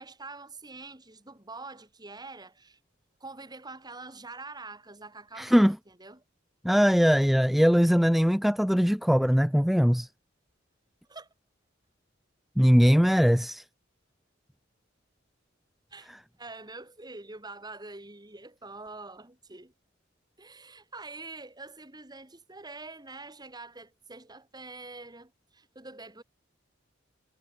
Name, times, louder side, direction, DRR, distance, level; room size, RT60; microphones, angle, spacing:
voice 1, 0.0-2.8 3.2-6.2 11.1-11.3 15.9-16.1 16.4-19.7 20.4-26.2, right 3 dB, 20° right, 3.5 m, -45 dB
voice 2, 5.4-5.8 6.6-10.1 12.6-13.6, equal, ahead, 0.5 m, -21 dB
head